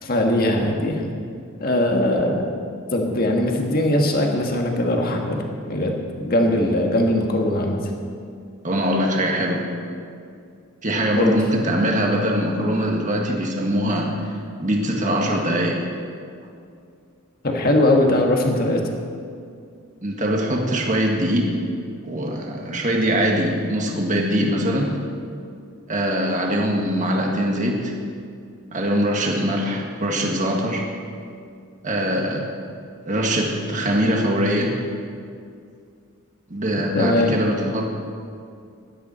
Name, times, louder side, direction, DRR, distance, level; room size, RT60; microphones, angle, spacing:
voice 1, 0.0-1.1 1.6-2.5 2.9-7.9 11.2-11.4 17.4-18.8 36.9-37.4, left 1 dB, 40° left, 1 dB, 1.6 m, -20 dB
voice 2, 8.6-9.6 10.8-14.3 14.6-15.8 20.0-21.5 22.0-25.0 25.9-27.9 28.7-30.8 31.8-32.4 33.0-34.7 36.5-37.9, equal, 35° right, 0 dB, 1.7 m, -22 dB
16.5 x 12.0 x 4.3 m, 2.3 s
head